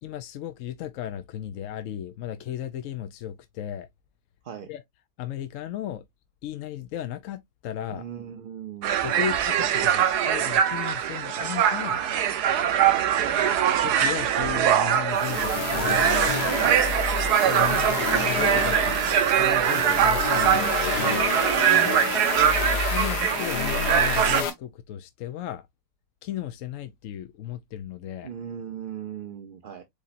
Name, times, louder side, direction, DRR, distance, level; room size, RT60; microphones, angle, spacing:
voice 1, 0.0-3.9 4.7-4.8 5.2-6.0 6.4-8.0 9.0-12.0 13.8-16.1 17.4-19.0 19.4-21.3 22.9-25.7 26.2-28.3, left 11 dB, 65° left, 0.9 m, -35 dB
voice 2, 7.9-9.2 12.5-12.8 16.6-16.9 21.7-22.0 28.2-29.8, right 8 dB, 55° right, 0.6 m, -39 dB
sound 1, 8.8-24.4, right 9 dB, 90° right, 1.3 m, -23 dB
sound 2, 15.1-24.5, left 7 dB, 85° left, 1.6 m, -29 dB
4.9 x 4.2 x 2.5 m
omnidirectional pair, 1.7 m